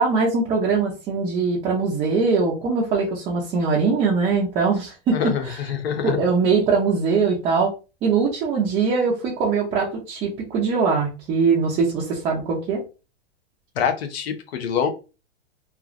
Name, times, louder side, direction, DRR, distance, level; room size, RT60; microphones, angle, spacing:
voice 1, 0.0-5.6 6.0-7.7 8.0-12.8, right 4 dB, 15° right, -5 dB, 0.5 m, -22 dB
voice 2, 5.1-6.2 13.8-14.9, left 7 dB, 70° left, 6 dB, 0.8 m, -25 dB
3.0 x 2.4 x 2.5 m, 0.31 s
supercardioid pair, 155°, 33 cm